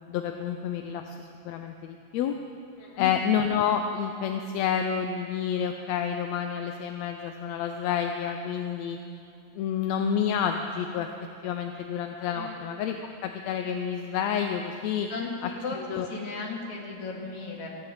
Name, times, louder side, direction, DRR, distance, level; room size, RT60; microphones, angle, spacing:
voice 1, 0.1-2.4 3.0-9.0 9.6-11.1 11.4-13.0 13.2-15.1 15.4-15.5 15.8-16.1, left 8 dB, 75° left, 5 dB, 1.7 m, -29 dB
voice 2, 2.8-3.1 12.3-12.6 15.1-17.7, left 4 dB, 55° left, -2 dB, 2.7 m, -36 dB
15.0 x 7.8 x 8.7 m, 2.7 s
omnidirectional pair, 3.4 m